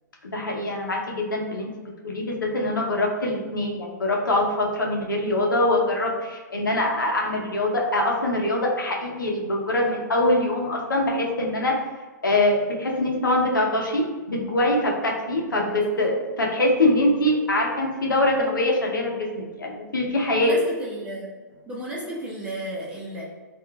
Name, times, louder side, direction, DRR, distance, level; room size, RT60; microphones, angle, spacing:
voice 1, 0.2-1.7 2.0-11.7 12.2-20.5, left 1 dB, 90° left, -1 dB, 0.7 m, -23 dB
voice 2, 20.3-21.3 21.7-23.2, right 1 dB, 10° right, -6 dB, 0.9 m, -33 dB
3.7 x 2.4 x 2.2 m, 1.3 s
hypercardioid pair, 125°, 10 cm